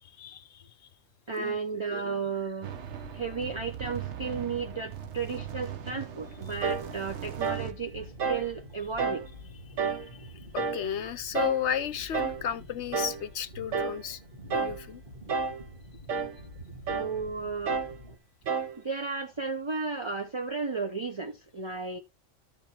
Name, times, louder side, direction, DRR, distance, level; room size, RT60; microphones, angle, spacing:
voice 1, 0.0-0.6 1.4-1.6 9.8-14.2 14.5-15.0, left 9 dB, 65° left, 1.0 m, -34 dB
voice 2, 1.3-2.7 3.1-9.3 11.0-11.1 16.9-17.8 18.1-18.2 18.8-22.0, right 4 dB, 25° right, 0.8 m, -34 dB
sound 1, 2.6-7.7, right 11 dB, 65° right, 1.1 m, -40 dB
sound 2, 2.7-18.2, left 1 dB, 45° right, 2.5 m, -48 dB
sound 3, 6.6-6.9 7.4-7.7 8.2-8.5 9.0-9.3 9.8-10.1 10.5-10.9 11.3-11.6 12.1-12.4 12.9-13.2 13.7-14.0 14.5-14.8 15.3-15.6 16.1-16.4 16.9-17.2 17.7-18.0 18.5-18.8, right 5 dB, 90° right, 1.3 m, -30 dB
13.5 x 4.9 x 4.4 m
omnidirectional pair, 1.3 m